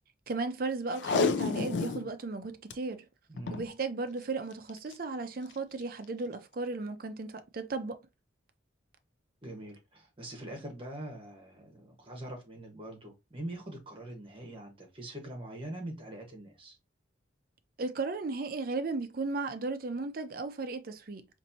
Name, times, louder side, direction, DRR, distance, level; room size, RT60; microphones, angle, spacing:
voice 1, 0.3-3.1 3.5-8.0 17.8-21.3, right 3 dB, 50° right, 0.5 m, -35 dB
Packing tape duct tape, 0.9-2.1 2.4-2.7 3.4-3.7 4.7-4.9 5.5-5.6, left 5 dB, 70° left, 0.4 m, -30 dB
voice 2, 3.3-3.6 9.4-16.8, right 1 dB, 30° right, 1.2 m, -43 dB
4.1 x 2.6 x 2.7 m
head